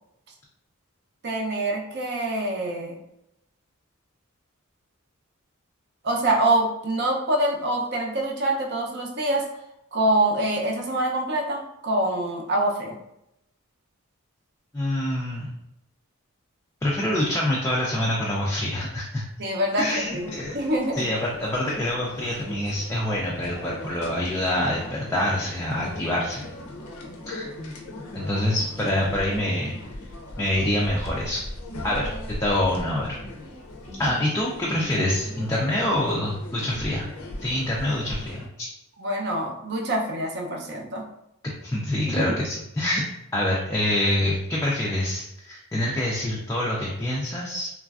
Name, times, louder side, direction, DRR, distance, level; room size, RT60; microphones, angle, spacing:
voice 1, 1.2-3.0 6.0-9.4 9.9-13.0 19.4-21.0 39.0-41.1 42.1-42.3, right 1 dB, 50° right, 1 dB, 0.5 m, -25 dB
voice 2, 14.7-15.5 16.8-19.2 19.8-20.6 20.9-26.5 27.3-27.5 28.1-29.8 30.4-31.4 31.8-33.2 34.0-37.1 37.4-38.7 41.6-43.0 43.3-47.7, left 1 dB, 15° left, -5 dB, 0.3 m, -26 dB
sound 1, 20.0-38.5, left 1 dB, 80° left, 0.5 m, -39 dB
3.1 x 2.4 x 2.3 m, 0.82 s
head